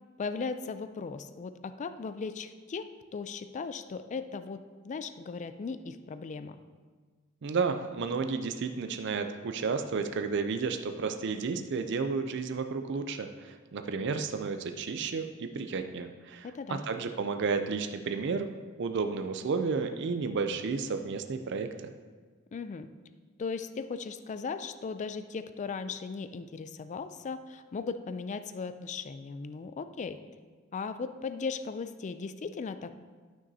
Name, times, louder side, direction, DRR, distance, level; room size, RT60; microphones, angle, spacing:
voice 1, 0.2-6.6 16.4-16.8 22.5-22.9 23.4-30.2 30.7-32.9, left 5 dB, 35° left, 11 dB, 0.3 m, -37 dB
voice 2, 7.4-18.5 18.8-21.9, right 4 dB, 60° right, 7 dB, 0.4 m, -32 dB
12.0 x 6.0 x 2.7 m, 1.5 s
head